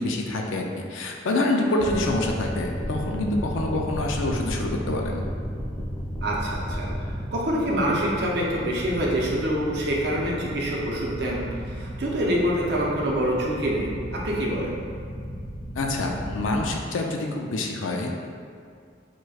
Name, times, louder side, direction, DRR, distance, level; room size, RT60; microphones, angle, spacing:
voice 1, 0.0-5.2 15.8-18.2, left 2 dB, 90° left, 1 dB, 0.4 m, -26 dB
Chink clink, 1.7-6.1, equal, 70° left, 0.8 m, -45 dB
sound 1, 1.8-16.7, equal, 5° right, 0.4 m, -34 dB
voice 2, 6.2-6.9 7.3-14.7, equal, 60° right, -4 dB, 0.6 m, -26 dB
4.7 x 2.2 x 2.3 m, 2.2 s
head